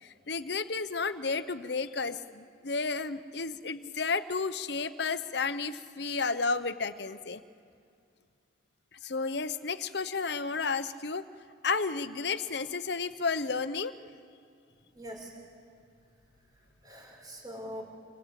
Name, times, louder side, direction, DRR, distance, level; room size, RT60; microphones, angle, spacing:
voice 1, 0.0-7.4 9.0-11.2 11.6-13.9, left 4 dB, 60° left, 12 dB, 0.9 m, -32 dB
voice 2, 14.9-15.3 16.6-17.8, equal, 20° right, 1 dB, 5.3 m, -43 dB
27.0 x 24.0 x 8.3 m, 2.3 s
head